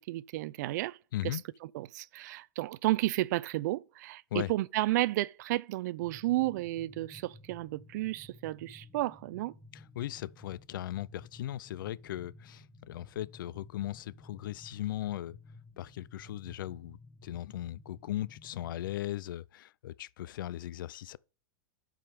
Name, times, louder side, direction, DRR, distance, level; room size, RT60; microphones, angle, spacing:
voice 1, 0.0-1.0 1.2-1.4 1.7-9.5, right 17 dB, 60° right, 0.4 m, -32 dB
voice 2, 1.1-1.4 4.3-4.5 9.7-15.4 15.8-21.2, left 13 dB, 85° left, 0.4 m, -38 dB
sound 1, 6.0-18.9, left 2 dB, 15° left, 3.7 m, -55 dB
7.6 x 5.0 x 5.3 m
supercardioid pair, 150°, 11 cm